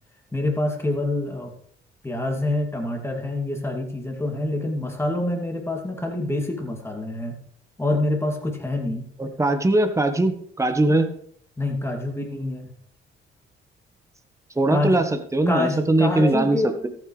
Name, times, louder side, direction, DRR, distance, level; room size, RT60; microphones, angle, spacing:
voice 1, 0.3-1.5 2.0-7.4 7.8-9.1 11.6-12.7 14.7-14.9 15.5-16.8, left 2 dB, 10° left, 1 dB, 2.6 m, -26 dB
voice 2, 9.2-11.1 14.5-16.9, right 2 dB, 15° right, 7 dB, 1.3 m, -21 dB
14.0 x 9.0 x 3.3 m, 0.64 s
cardioid pair, 90°, 20 cm